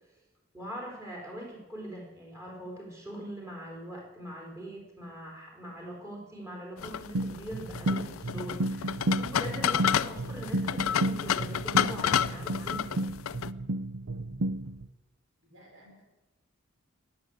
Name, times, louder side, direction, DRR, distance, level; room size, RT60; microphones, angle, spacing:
voice 1, 0.5-13.1, equal, 15° right, 0 dB, 4.1 m, -42 dB
sound 1, 6.8-13.5, left 9 dB, 90° left, 0.5 m, -30 dB
sound 2, 7.1-14.9, right 1 dB, 85° right, 0.7 m, -32 dB
voice 2, 15.4-16.0, equal, 70° right, -3 dB, 4.8 m, -56 dB
19.0 x 8.0 x 9.4 m, 1.1 s
head